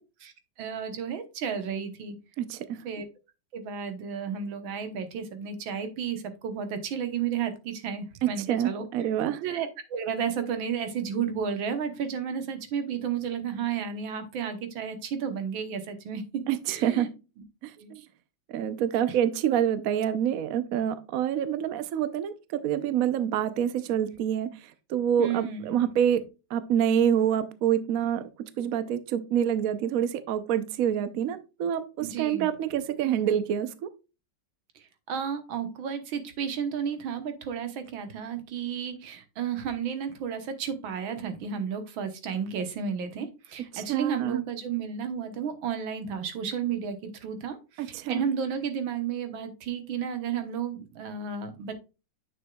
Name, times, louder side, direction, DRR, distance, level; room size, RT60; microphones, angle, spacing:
voice 1, 0.6-2.2 2.9-3.1 3.5-8.8 9.4-16.4 16.7-17.1 17.8-17.9 25.2-25.8 32.0-32.5 34.8-51.7, right 7 dB, 85° right, 8 dB, 1.9 m, -32 dB
voice 2, 2.4-2.9 8.2-9.4 16.5-17.1 17.6-18.1 18.5-26.2 26.5-28.3 28.6-33.9 43.7-44.4 47.8-48.2, right 9 dB, 60° right, 12 dB, 0.9 m, -27 dB
9.2 x 6.3 x 2.3 m, 0.29 s
omnidirectional pair, 2.1 m